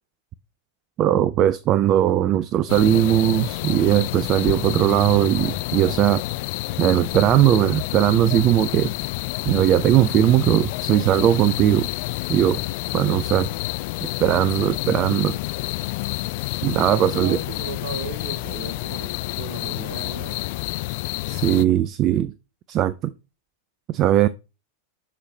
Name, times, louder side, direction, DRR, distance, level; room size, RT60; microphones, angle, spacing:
voice 1, 1.0-6.2 6.8-8.9 9.4-11.9 12.3-12.6 12.9-13.5 14.2-15.4 16.6-17.4 21.3-22.3 22.7-23.1 23.9-24.3, right 12 dB, 35° right, 0.5 m, -19 dB
sound 1, 2.7-21.6, left 20 dB, 50° left, 0.3 m, -29 dB
voice 2, 17.0-20.5, right 4 dB, 50° right, 3.3 m, -36 dB
9.9 x 6.4 x 3.2 m
figure-of-eight pair, 90°, 0 cm